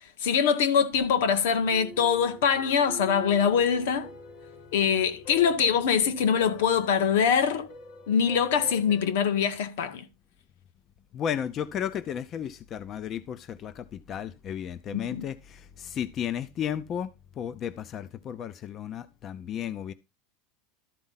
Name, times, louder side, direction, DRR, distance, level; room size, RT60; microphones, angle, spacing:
voice 1, 0.2-4.1 4.7-7.7 8.1-10.0 14.9-15.3, left 7 dB, 80° left, 1.8 m, -23 dB
sound 1, 0.9-9.1, left 2 dB, 65° left, 3.0 m, -46 dB
voice 2, 11.1-19.9, left 9 dB, 30° left, 0.5 m, -34 dB
13.0 x 4.5 x 5.6 m
supercardioid pair, 155°, 0 cm